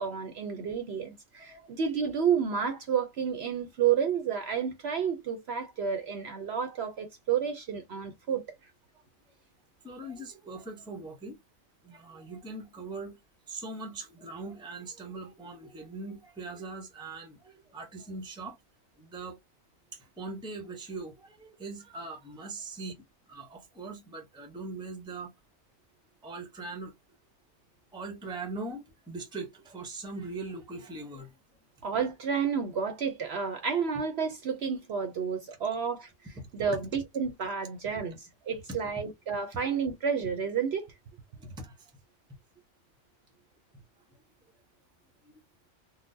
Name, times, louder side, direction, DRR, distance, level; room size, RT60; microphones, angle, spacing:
voice 1, 0.0-8.4 31.8-36.1 36.5-40.9, right 7 dB, 60° right, 0.7 m, -30 dB
voice 2, 1.3-1.7 9.8-11.4 11.8-13.2 13.5-18.6 19.0-19.4 19.9-22.9 23.3-25.3 26.2-26.9 27.9-31.3 36.4-36.8 38.7-39.0 41.4-41.9, right 3 dB, 5° right, 0.5 m, -41 dB
3.9 x 2.1 x 2.6 m
omnidirectional pair, 1.4 m